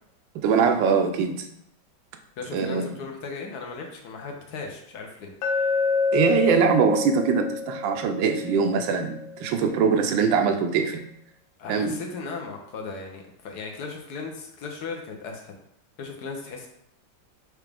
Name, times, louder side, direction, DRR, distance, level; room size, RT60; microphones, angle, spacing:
voice 1, 0.3-1.5 2.5-2.9 6.1-11.0 11.7-12.0, right 6 dB, 80° right, 6 dB, 1.3 m, -22 dB
voice 2, 2.4-5.3 11.6-15.6 16.0-16.7, left 4 dB, 65° left, 2 dB, 1.2 m, -36 dB
Glass, 5.4-9.5, left 4 dB, 85° left, 1.5 m, -28 dB
4.9 x 3.2 x 3.4 m, 0.76 s
omnidirectional pair, 2.1 m